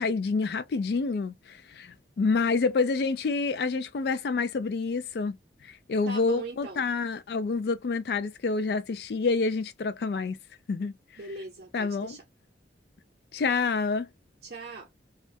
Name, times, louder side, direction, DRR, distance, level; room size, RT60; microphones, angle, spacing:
voice 1, 0.0-5.4 5.9-10.4 10.7-10.9 11.7-12.2 13.3-14.1, left 4 dB, 60° left, 0.3 m, -28 dB
voice 2, 6.1-6.9 11.2-12.2 14.4-14.9, right 3 dB, 60° right, 0.6 m, -39 dB
2.4 x 2.1 x 2.5 m
head